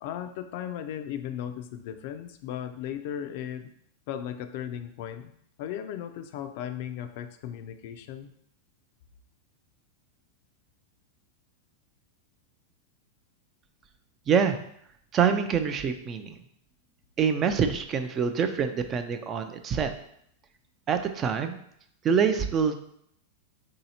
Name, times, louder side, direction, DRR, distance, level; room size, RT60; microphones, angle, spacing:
voice 1, 0.0-3.7 4.1-5.3 5.6-8.3, left 10 dB, 55° left, 8 dB, 0.4 m, -36 dB
voice 2, 14.3-14.6 15.1-16.4 17.2-19.9 20.9-21.6 22.0-22.7, right 7 dB, 25° right, 8 dB, 0.3 m, -25 dB
3.2 x 2.8 x 4.1 m, 0.69 s
supercardioid pair, 135°, 0 cm